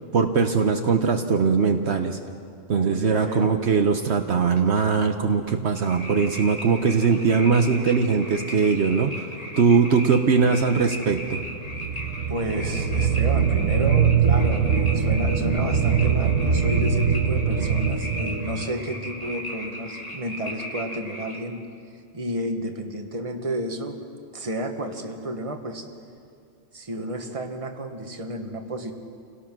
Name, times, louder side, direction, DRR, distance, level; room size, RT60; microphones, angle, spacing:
voice 1, 0.1-2.2 2.7-9.3 9.6-11.4, right 5 dB, 65° right, 6 dB, 1.2 m, -21 dB
voice 2, 2.7-3.6 12.3-21.6 22.1-24.0 24.3-25.9 26.7-28.9, right 1 dB, 30° right, 4 dB, 1.5 m, -31 dB
sound 1, 5.8-21.4, equal, 30° left, 2.4 m, -37 dB
sound 2, 11.1-18.7, right 6 dB, 85° right, 1.5 m, -22 dB
28.5 x 17.5 x 6.1 m, 2.3 s
omnidirectional pair, 1.2 m